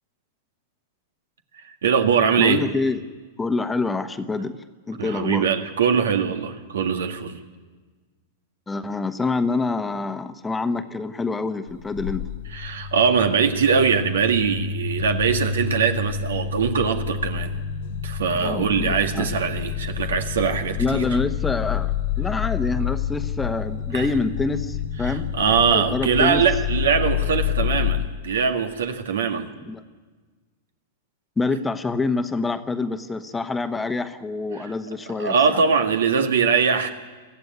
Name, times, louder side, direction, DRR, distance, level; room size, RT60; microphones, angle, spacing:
voice 1, 1.6-2.7 5.0-7.4 12.5-17.6 18.0-21.1 23.9-24.1 25.0-29.5 34.5-34.7 35.2-36.9, right 6 dB, 85° right, 6 dB, 1.9 m, -22 dB
voice 2, 2.4-3.0 3.4-4.6 4.9-5.5 8.7-12.2 18.3-19.3 20.8-26.4 29.6-29.8 31.4-35.6, left 3 dB, 10° left, 9 dB, 1.1 m, -26 dB
sound 1, 11.7-28.1, left 8 dB, 65° left, 1.0 m, -28 dB
22.5 x 14.0 x 9.5 m, 1.4 s
hypercardioid pair, 125°, 0 cm